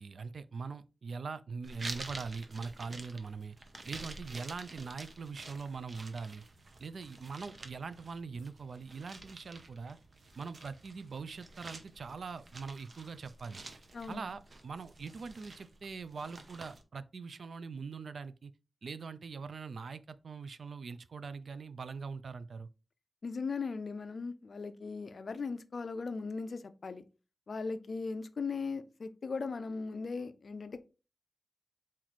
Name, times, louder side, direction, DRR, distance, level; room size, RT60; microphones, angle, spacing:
voice 1, 0.0-3.6 3.8-6.4 6.8-10.0 10.4-13.6 14.1-18.5 18.8-22.7, right 5 dB, 70° right, 0.4 m, -42 dB
sound 1, 1.6-16.8, right 2 dB, 45° right, 0.8 m, -49 dB
voice 2, 13.9-14.3 23.2-27.0 27.5-30.8, left 4 dB, 55° left, 0.5 m, -38 dB
4.3 x 3.1 x 4.0 m
wide cardioid pair, 110°, 0 cm